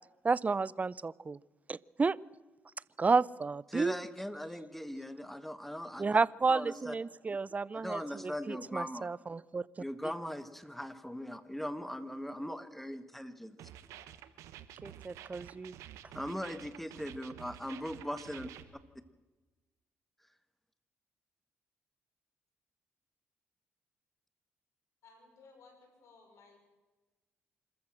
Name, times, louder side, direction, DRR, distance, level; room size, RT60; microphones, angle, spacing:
voice 1, 0.2-1.4 1.7-2.2 3.0-4.0 6.0-9.7 14.8-15.8, right 4 dB, 30° right, 22 dB, 0.5 m, -31 dB
voice 2, 3.7-6.1 6.5-6.9 7.7-9.1 9.8-13.6 16.1-18.5, equal, 5° left, 12 dB, 1.6 m, -40 dB
sound 1, 13.6-18.6, right 11 dB, 90° right, 1.2 m, -50 dB
voice 3, 25.0-26.6, left 4 dB, 75° left, 4 dB, 6.1 m, -59 dB
25.5 x 14.0 x 7.7 m, 1.2 s
cardioid pair, 70°, 5 cm